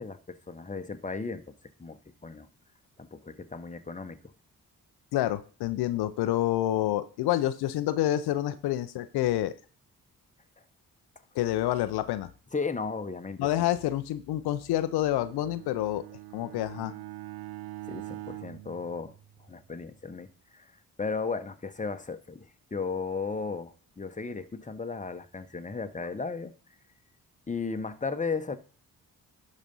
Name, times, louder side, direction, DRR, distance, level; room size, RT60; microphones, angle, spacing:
voice 1, 0.0-1.4 1.8-2.5 3.0-4.2 12.5-13.7 17.9-19.1 19.5-20.7 21.0-26.5 27.5-28.6, left 4 dB, 20° left, 8 dB, 1.1 m, -35 dB
voice 2, 5.1-9.5 11.3-12.3 13.4-16.1 16.3-16.9, left 13 dB, 85° left, 12 dB, 0.6 m, -28 dB
Bowed string instrument, 15.0-19.7, right 15 dB, 75° right, 0.7 m, -43 dB
11.5 x 4.2 x 5.4 m, 0.39 s
supercardioid pair, 60°, 37 cm